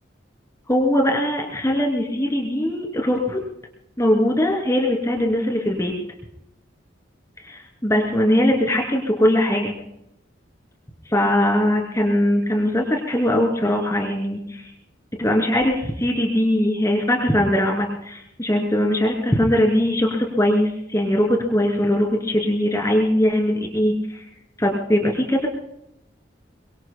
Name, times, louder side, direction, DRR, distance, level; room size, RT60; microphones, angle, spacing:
voice 1, 0.7-3.4 4.0-5.9 7.4-9.7 11.1-14.7 15.2-24.2 24.6-25.5, left 1 dB, 15° left, 2 dB, 2.8 m, -21 dB
24.0 x 23.5 x 2.2 m, 0.78 s
head